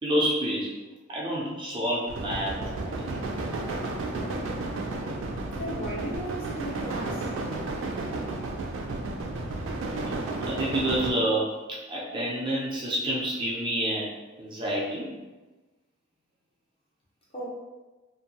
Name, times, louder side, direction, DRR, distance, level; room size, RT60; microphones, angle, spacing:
voice 1, 0.0-0.7 1.1-3.0 10.4-14.1 14.4-15.1, right 1 dB, 25° right, -6 dB, 0.5 m, -28 dB
sound 1, 2.1-11.1, right 2 dB, 80° right, 0.4 m, -32 dB
voice 2, 5.5-7.3 17.3-17.5, right 1 dB, 30° left, -6 dB, 0.8 m, -35 dB
2.6 x 2.2 x 2.8 m, 1.2 s
head